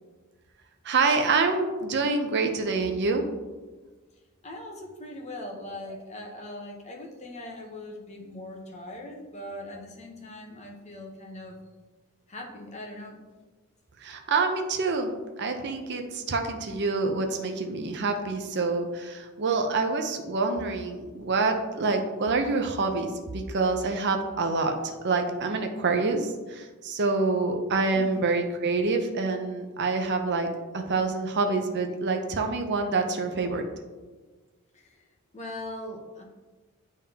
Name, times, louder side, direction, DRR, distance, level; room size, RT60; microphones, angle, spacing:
voice 1, 0.8-3.2 5.9-6.0 14.0-15.1 15.4-30.5 30.7-33.6, right 3 dB, 50° right, 5 dB, 0.6 m, -27 dB
voice 2, 4.4-11.6 12.3-13.2 27.9-28.2 34.7-35.0 35.3-36.2, left 1 dB, 30° left, 1 dB, 1.0 m, -40 dB
10.5 x 3.6 x 2.9 m, 1.3 s
head